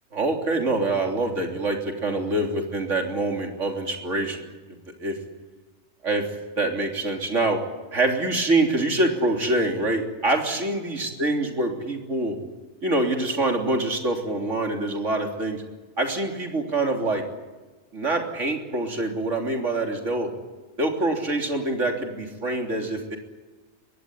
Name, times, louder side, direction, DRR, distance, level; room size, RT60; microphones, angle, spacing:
voice 1, 0.1-4.4 4.9-5.2 6.0-6.3 6.5-7.6 7.9-12.4 12.8-15.6 16.0-17.2 17.9-20.3 20.8-23.2, right 2 dB, 65° right, 3 dB, 3.8 m, -25 dB
22.5 x 17.5 x 10.0 m, 1.3 s
omnidirectional pair, 1.4 m